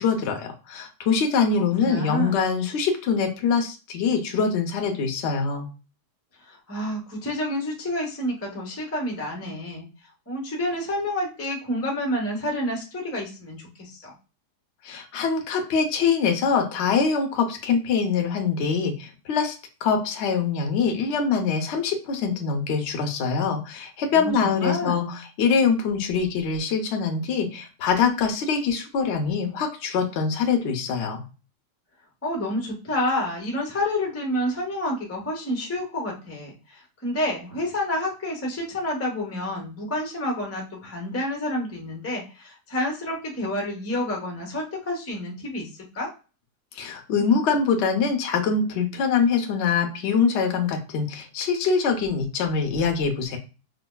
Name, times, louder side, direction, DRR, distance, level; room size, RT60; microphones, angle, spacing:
voice 1, 0.0-5.7 14.8-19.5 19.8-31.2 46.7-53.4, left 5 dB, 60° left, 4 dB, 0.7 m, -24 dB
voice 2, 1.5-2.5 6.5-9.9 10.3-14.1 24.1-25.2 32.2-45.7 45.9-46.1, left 1 dB, 15° left, -1 dB, 0.5 m, -29 dB
4.9 x 2.2 x 2.2 m, 0.33 s
omnidirectional pair, 1.8 m